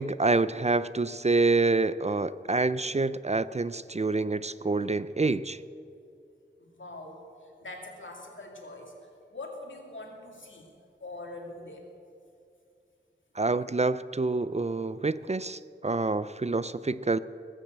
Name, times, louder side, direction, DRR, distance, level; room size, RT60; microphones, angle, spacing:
voice 1, 0.0-5.6 13.4-17.2, right 3 dB, 35° right, 15 dB, 0.4 m, -27 dB
voice 2, 6.6-11.9 13.6-13.7, left 2 dB, 80° left, 0 dB, 2.5 m, -44 dB
20.0 x 7.3 x 8.0 m, 2.6 s
wide cardioid pair, 50°, 20 cm